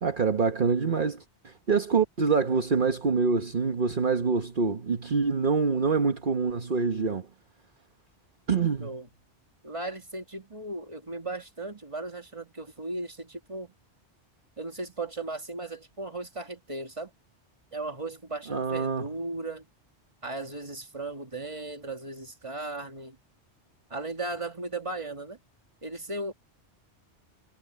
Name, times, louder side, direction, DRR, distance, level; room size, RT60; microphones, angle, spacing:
voice 1, 0.0-7.3 8.5-8.9 18.5-19.0, right 5 dB, 45° right, 1.4 m, -26 dB
voice 2, 9.6-13.7 14.6-17.1 17.7-19.7 20.2-23.2 23.9-25.4 25.8-26.3, right 2 dB, 25° right, 2.2 m, -36 dB
omnidirectional pair, 1.2 m